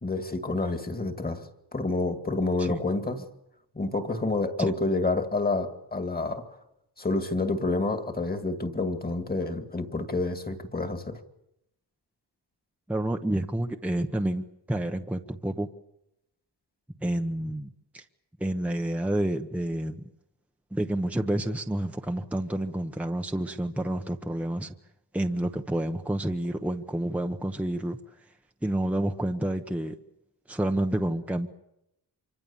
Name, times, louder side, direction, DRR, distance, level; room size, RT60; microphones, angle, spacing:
voice 1, 0.0-3.2 3.7-6.5 7.0-11.2, left 3 dB, 20° left, 8 dB, 2.3 m, -28 dB
voice 2, 12.9-15.7 17.0-18.0 18.4-20.0 20.7-24.7 25.1-28.0 28.6-30.0 30.5-31.5, right 1 dB, 5° right, 4 dB, 1.0 m, -29 dB
26.5 x 25.0 x 7.2 m, 0.84 s
wide cardioid pair, 145°, 42 cm